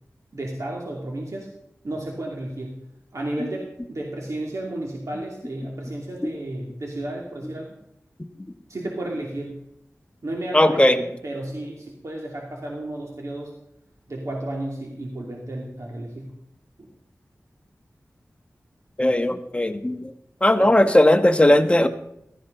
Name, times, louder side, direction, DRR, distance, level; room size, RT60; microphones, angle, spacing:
voice 1, 0.3-1.5 1.8-2.8 3.1-7.7 8.7-9.6 10.2-10.8 11.2-13.5 14.1-16.3 16.8-16.9 20.6-20.7, right 1 dB, 65° right, -1 dB, 2.6 m, -32 dB
voice 2, 10.5-11.0 19.0-20.1 20.4-21.9, left 1 dB, 20° left, 8 dB, 1.2 m, -17 dB
15.5 x 13.0 x 3.9 m, 0.80 s
cardioid pair, 45°, 6 cm